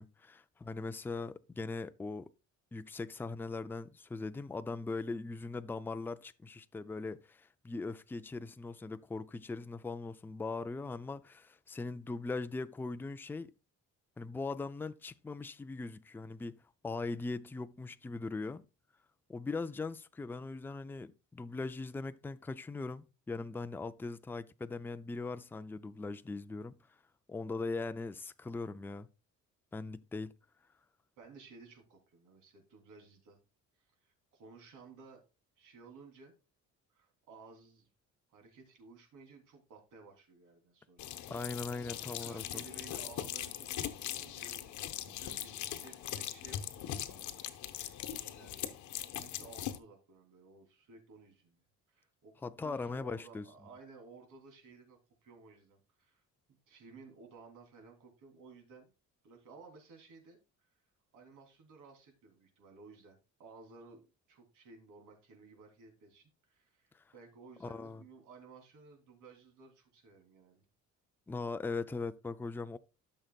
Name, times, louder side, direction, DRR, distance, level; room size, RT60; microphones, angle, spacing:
voice 1, 0.0-2.3 2.7-13.5 14.2-18.7 19.3-26.8 27.3-29.1 29.7-30.3 41.3-42.6 52.4-53.5 66.9-67.0 67.6-68.0 71.3-72.8, left 3 dB, 5° left, 0.4 m, -40 dB
voice 2, 31.2-33.4 33.8-35.2 35.6-36.4 36.9-37.9 38.3-41.1 41.8-51.6 51.9-56.2 56.7-58.8 59.2-60.4 60.7-60.8 61.1-64.0 64.3-70.6, right 4 dB, 75° right, 3.3 m, -56 dB
sound 1, 41.0-49.8, left 11 dB, 65° left, 1.1 m, -41 dB
12.5 x 6.5 x 2.3 m
cardioid pair, 130°, 31 cm